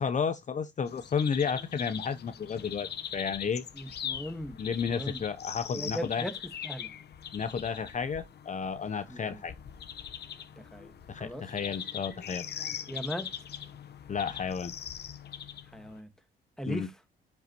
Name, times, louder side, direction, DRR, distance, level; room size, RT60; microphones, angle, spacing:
voice 1, 0.0-3.6 4.6-6.3 7.3-9.5 11.1-12.4 14.1-14.7 16.7-16.9, left 6 dB, 35° left, 0.8 m, -32 dB
birds voices afternoon, 0.9-16.0, left 8 dB, 50° left, 1.1 m, -41 dB
voice 2, 3.8-4.6 4.9-5.2 5.7-6.3 6.6-6.9 9.1-9.4 10.7-10.9 11.2-11.4 12.9-13.3 15.7-16.1 16.6-16.9, equal, 5° left, 1.6 m, -37 dB
11.5 x 5.3 x 3.0 m
cardioid pair, 110°, 21 cm